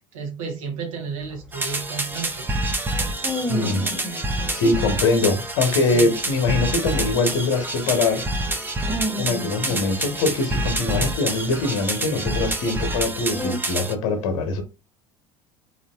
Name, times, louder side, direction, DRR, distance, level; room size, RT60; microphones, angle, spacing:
voice 1, 0.1-2.4, right 6 dB, 75° right, 0.9 m, -32 dB
sound 1, 1.2-4.5 4.9-5.1 5.5-5.6 5.9-8.5 8.8-10.7 10.9-13.6, equal, 5° left, 1.0 m, -33 dB
sound 2, 1.5-13.9, right 2 dB, 10° right, 0.5 m, -27 dB
voice 2, 3.5-3.9 4.5-8.2 9.2-14.6, left 3 dB, 65° left, 0.9 m, -23 dB
3.0 x 2.4 x 2.2 m
hypercardioid pair, 70°, 17 cm